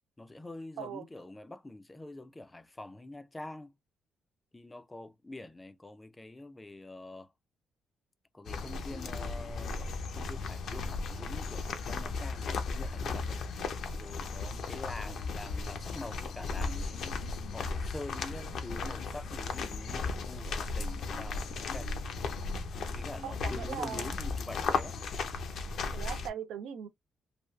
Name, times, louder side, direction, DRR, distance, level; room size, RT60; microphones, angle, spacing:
voice 1, 0.2-3.7 4.5-7.3 8.3-13.4 13.9-17.2 17.5-21.9 22.9-25.0, left 2 dB, 15° left, 0.4 m, -45 dB
sound 1, 8.5-26.3, left 4 dB, 65° left, 0.6 m, -36 dB
voice 2, 23.2-24.1 25.9-26.9, right 8 dB, 85° right, 0.4 m, -39 dB
3.2 x 2.3 x 2.3 m
cardioid pair, 90°, 0 cm